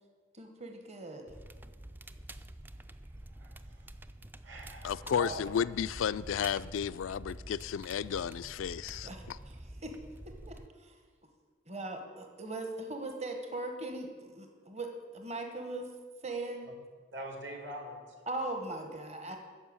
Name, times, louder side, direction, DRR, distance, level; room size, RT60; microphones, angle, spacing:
voice 1, 0.3-1.3 9.0-9.6 9.8-10.0 10.3-11.0 11.7-15.9 16.2-16.7 18.3-19.4, right 2 dB, 35° right, 1.1 m, -40 dB
Crackle, 1.3-10.7, right 1 dB, 10° right, 0.3 m, -48 dB
voice 2, 3.3-3.9 4.4-5.4 17.1-18.2, right 1 dB, 60° right, 2.5 m, -43 dB
voice 3, 4.8-9.4, left 8 dB, 75° left, 0.3 m, -33 dB
10.0 x 6.8 x 8.8 m
head